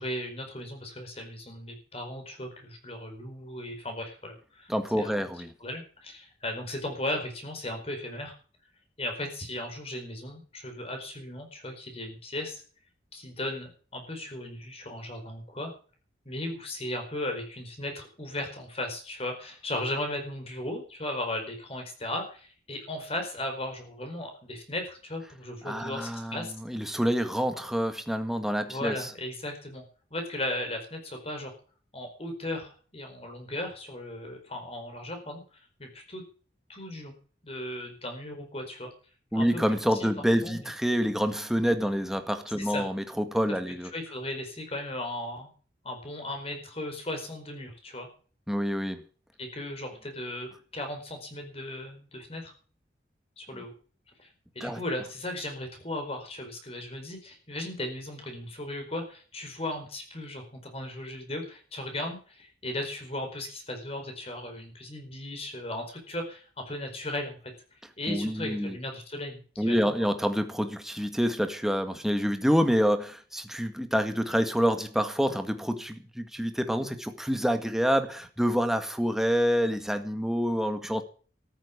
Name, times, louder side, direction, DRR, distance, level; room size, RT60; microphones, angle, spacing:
voice 1, 0.0-4.7 5.0-5.1 5.6-8.3 9.0-12.6 13.1-15.7 16.2-26.5 27.5-27.7 28.7-29.8 30.1-31.5 31.9-36.2 36.7-37.1 37.4-38.9 39.3-39.6 40.0-40.1 40.4-40.7 42.6-42.9 43.9-45.5 45.8-48.1 49.4-52.5 53.4-53.7 54.2-54.3 54.5-67.4 68.0-69.9, left 1 dB, 35° left, 4 dB, 4.6 m, -36 dB
voice 2, 4.7-5.5 25.7-29.1 39.3-43.9 48.5-49.0 53.5-53.6 54.6-54.8 68.1-68.8 69.6-81.0, equal, ahead, 7 dB, 1.8 m, -27 dB
14.0 x 9.1 x 8.6 m, 0.41 s
head